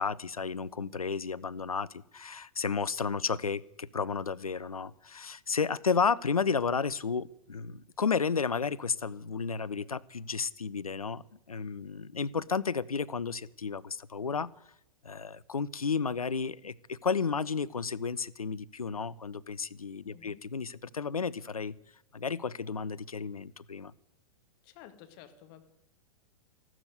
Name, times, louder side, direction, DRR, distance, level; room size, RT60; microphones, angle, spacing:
voice 1, 0.0-14.5 15.0-21.7 22.1-23.9, left 5 dB, 80° left, 18 dB, 0.6 m, -32 dB
voice 2, 20.0-20.4 24.6-25.6, left 11 dB, 40° left, 8 dB, 1.9 m, -52 dB
14.0 x 12.0 x 8.0 m, 0.81 s
figure-of-eight pair, 100°, 18 cm